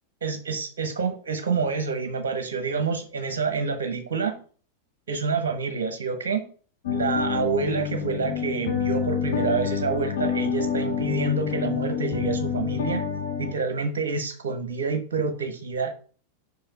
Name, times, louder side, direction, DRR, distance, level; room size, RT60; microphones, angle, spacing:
voice 1, 0.2-4.4 5.1-6.5 6.9-13.0 13.4-15.9, right 5 dB, 60° right, 7 dB, 1.3 m, -28 dB
sound 1, 6.8-13.5, left 7 dB, 60° left, 2.4 m, -27 dB
5.6 x 5.6 x 5.5 m, 0.41 s
figure-of-eight pair, 90°, 0 cm